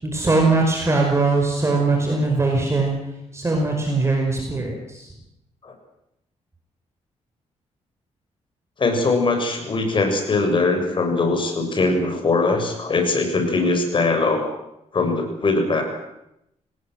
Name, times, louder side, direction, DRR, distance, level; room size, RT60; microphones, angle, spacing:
voice 1, 0.0-5.1, right 3 dB, 20° right, 1 dB, 5.4 m, -21 dB
voice 2, 8.8-14.5 14.9-15.8, left 3 dB, 40° left, 5 dB, 6.8 m, -21 dB
27.5 x 19.0 x 7.9 m, 0.84 s
cardioid pair, 105°, 12 cm